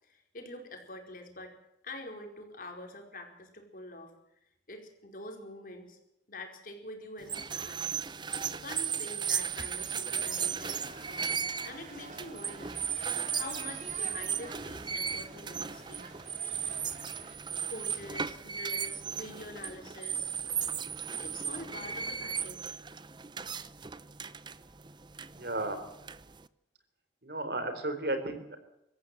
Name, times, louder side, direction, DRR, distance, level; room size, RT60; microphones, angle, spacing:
voice 1, 0.0-1.6 1.8-4.1 4.7-6.0 6.3-7.9 8.5-12.8 13.3-16.1 17.7-20.3 21.2-22.8, left 1 dB, 50° left, 3 dB, 4.9 m, -46 dB
sound 1, 7.2-26.5, right 7 dB, 25° right, 0.7 m, -36 dB
sound 2, 9.8-17.4, right 3 dB, 40° right, 2.8 m, -49 dB
voice 2, 25.4-25.8 27.2-28.6, right 2 dB, 60° right, 9 dB, 3.9 m, -33 dB
25.0 x 14.5 x 7.9 m, 0.83 s
head